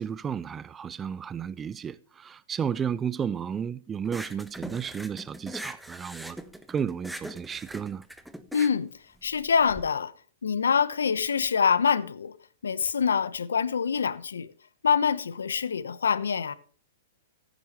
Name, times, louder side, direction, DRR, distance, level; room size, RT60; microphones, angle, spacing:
voice 1, 0.0-6.4 6.7-8.0, right 7 dB, 20° right, 0.5 m, -33 dB
sound 1, 4.0-9.8, right 1 dB, ahead, 1.2 m, -41 dB
voice 2, 8.5-8.9 9.2-10.1 10.4-12.3 12.6-14.5 14.8-16.5, left 6 dB, 80° left, 1.0 m, -25 dB
15.0 x 9.2 x 3.1 m
hypercardioid pair, 115°, 0 cm